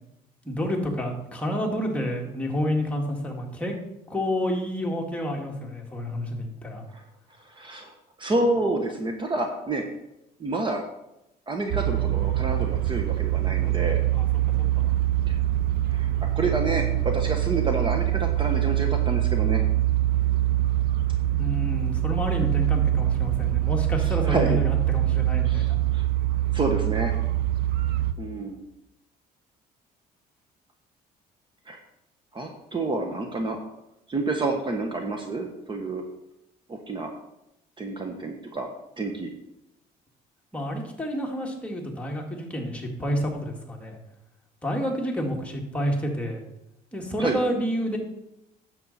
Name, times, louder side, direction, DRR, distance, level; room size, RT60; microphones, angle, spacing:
voice 1, 0.5-3.7 4.1-6.8 14.1-14.9 21.4-25.9 40.5-44.0 44.6-46.4 46.9-48.0, equal, 5° left, 0 dB, 2.0 m, -29 dB
voice 2, 7.4-9.9 10.4-10.8 11.5-14.0 15.3-15.4 15.9-19.6 24.0-24.6 25.4-26.1 26.5-27.1 28.2-28.6 31.7-31.8 32.3-33.6 34.1-36.0 36.7-37.1 37.8-38.7 39.0-39.3 47.2-47.4, right 2 dB, 30° right, 4 dB, 1.2 m, -29 dB
sound 1, 11.7-28.1, right 14 dB, 65° right, 0.7 m, -24 dB
10.5 x 7.6 x 4.2 m, 0.87 s
cardioid pair, 110°, 17 cm